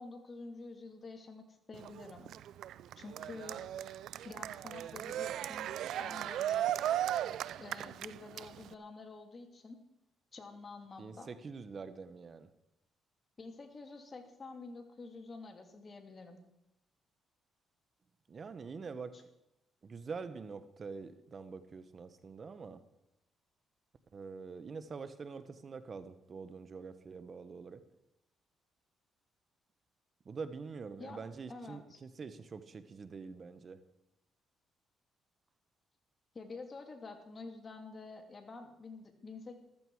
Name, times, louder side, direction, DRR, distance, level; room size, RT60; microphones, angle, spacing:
voice 1, 0.0-2.3 3.0-3.7 4.2-6.7 7.6-9.8 10.3-11.3 13.4-16.4 19.1-19.2 31.0-31.2 31.5-32.0 36.3-39.6, left 3 dB, 35° left, 5 dB, 2.5 m, -48 dB
Cheering, 1.7-8.7, right 11 dB, 80° right, 0.4 m, -37 dB
voice 2, 11.0-12.5 18.3-19.2 19.8-22.8 24.1-27.8 30.3-33.8, right 5 dB, 45° right, 12 dB, 1.0 m, -45 dB
14.5 x 14.0 x 4.7 m, 0.88 s
cardioid pair, 90°, 0 cm